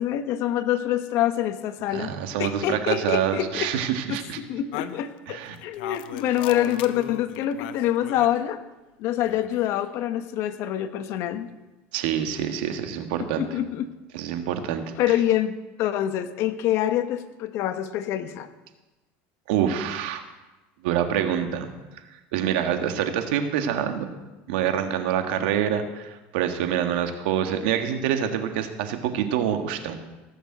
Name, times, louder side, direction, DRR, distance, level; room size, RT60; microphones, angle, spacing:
voice 1, 0.0-2.1 2.4-3.7 4.1-8.6 9.0-11.5 13.2-13.9 15.0-18.5, left 12 dB, 60° left, 11 dB, 1.1 m, -26 dB
voice 2, 1.9-4.4 5.3-5.5 11.9-13.4 14.1-14.8 19.5-20.2 20.8-21.7 22.3-24.1 24.5-29.9, right 9 dB, 80° right, 7 dB, 1.6 m, -26 dB
sound 1, 4.7-8.4 9.1-9.8, left 12 dB, 80° left, 0.9 m, -37 dB
17.5 x 6.8 x 7.9 m, 1.1 s
supercardioid pair, 120°, 5 cm